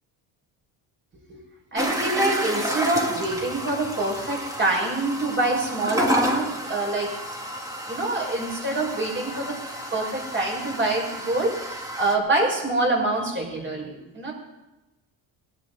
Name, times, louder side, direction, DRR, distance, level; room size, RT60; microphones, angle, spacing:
voice 1, 1.7-7.1 7.9-9.6 9.9-14.3, right 2 dB, 25° right, -1 dB, 5.9 m, -25 dB
sound 1, 1.8-12.2, equal, 10° right, 2.1 m, -30 dB
20.5 x 11.0 x 4.1 m, 0.99 s
cardioid pair, 115°, 44 cm